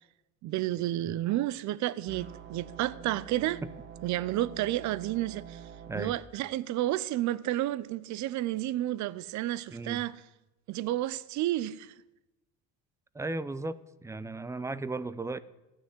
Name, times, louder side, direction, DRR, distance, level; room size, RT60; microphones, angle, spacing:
voice 1, 0.4-3.6 4.0-5.6 5.9-10.2 10.7-11.9, right 14 dB, 50° right, 0.6 m, -31 dB
sound 1, 2.1-6.2, right 8 dB, 30° right, 1.2 m, -46 dB
voice 2, 9.7-10.0 13.1-15.4, right 2 dB, 10° right, 0.4 m, -35 dB
14.5 x 6.4 x 9.5 m
cardioid pair, 120°, 36 cm